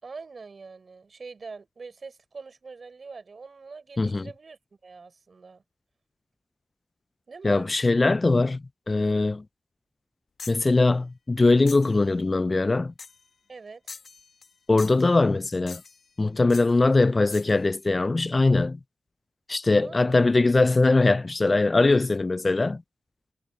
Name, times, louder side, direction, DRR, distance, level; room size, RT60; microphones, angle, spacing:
voice 1, 0.0-5.6 7.3-7.7 11.9-12.0 13.5-13.8 16.8-16.9 19.8-20.3, right 4 dB, 55° right, 4.3 m, -44 dB
voice 2, 4.0-4.3 7.4-9.4 10.5-12.9 14.7-15.8 16.2-18.8 19.5-22.8, left 3 dB, 35° left, 0.3 m, -21 dB
sound 1, 10.4-10.7 11.7-12.0 13.0-13.3 13.9-14.5 14.8-15.1 15.7-16.1 16.5-16.7 17.3-17.6, left 5 dB, 70° left, 1.1 m, -43 dB
cardioid pair, 60°, 0 cm